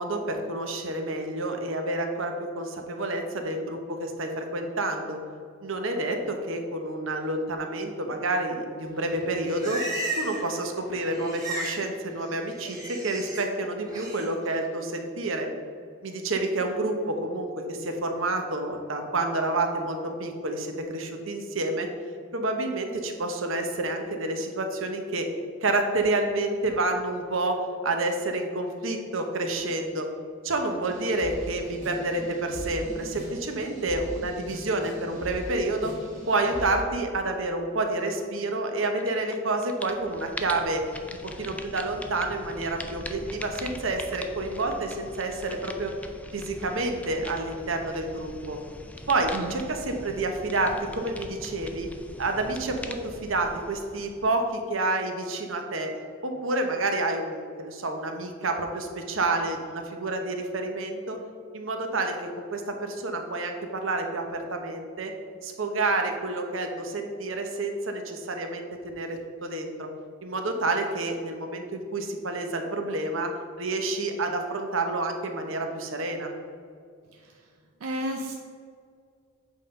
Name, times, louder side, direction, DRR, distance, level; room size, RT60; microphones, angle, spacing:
voice 1, 0.0-5.2 5.6-9.8 10.2-15.5 16.0-21.9 22.3-25.3 25.6-27.6 27.8-30.1 30.4-35.9 36.3-40.8 41.4-45.9 46.3-48.6 49.1-51.9 52.2-55.9 56.2-61.2 61.5-65.1 65.4-69.9 70.2-73.3 73.6-76.3, right 2 dB, 65° right, 4 dB, 1.0 m, -29 dB
Livestock farm animals working animals, 9.1-10.5 10.8-11.8 12.1-13.4 13.9-14.3, right 2 dB, 15° right, 1.8 m, -35 dB
sound 1, 30.8-36.8, equal, 35° right, 1.7 m, -40 dB
sound 2, 39.0-39.4 39.6-54.6, left 1 dB, 5° left, 0.4 m, -42 dB
voice 2, 49.3-49.6 77.1-77.5 77.8-78.3, right 1 dB, 85° right, 2 dB, 0.6 m, -33 dB
8.2 x 3.9 x 5.3 m, 2.2 s
head